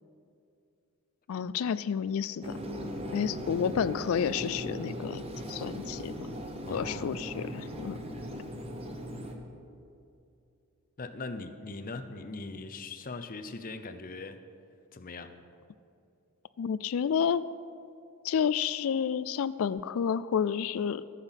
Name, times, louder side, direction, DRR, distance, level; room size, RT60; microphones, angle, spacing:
voice 1, 1.3-2.6 3.1-6.1 6.7-8.0 16.6-17.5 18.2-21.0, left 7 dB, 70° left, 15 dB, 0.3 m, -30 dB
sound 1, 2.4-9.3, equal, 25° right, 1.1 m, -38 dB
voice 2, 6.7-7.1 11.0-14.4 14.9-15.3, left 3 dB, 40° left, 9 dB, 0.7 m, -40 dB
14.5 x 5.8 x 8.0 m, 2.6 s
head